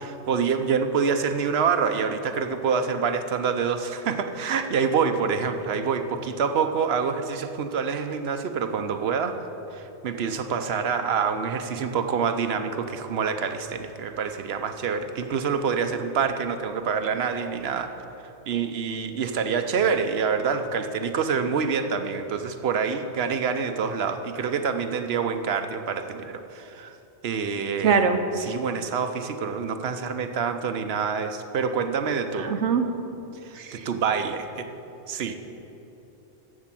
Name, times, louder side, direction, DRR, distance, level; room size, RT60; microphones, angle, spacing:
voice 1, 0.0-9.4 9.7-17.9 18.5-27.0 27.2-28.1 28.4-32.5 33.4-34.7 35.1-35.4, right 6 dB, 65° right, 8 dB, 1.0 m, -26 dB
voice 2, 27.8-28.2 32.4-32.9 33.6-33.9, right 6 dB, 90° right, 7 dB, 1.2 m, -22 dB
11.0 x 7.4 x 7.5 m, 3.0 s
omnidirectional pair, 1.1 m